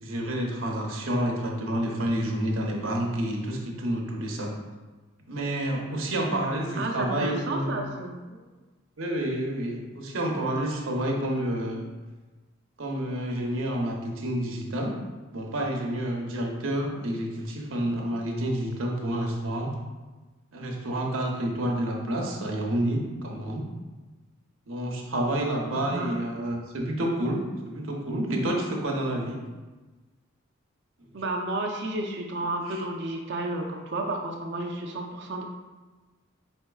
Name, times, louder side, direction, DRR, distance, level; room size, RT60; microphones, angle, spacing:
voice 1, 0.0-4.5 5.3-7.9 9.0-11.9 12.8-14.9 15.3-19.7 20.5-23.6 24.7-27.4 27.6-29.4 32.7-32.8, right 1 dB, 85° right, 0 dB, 0.8 m, -29 dB
voice 2, 6.7-8.4 25.7-26.2 31.1-35.4, right 2 dB, 60° right, 2 dB, 0.5 m, -32 dB
4.4 x 4.4 x 2.3 m, 1.2 s
head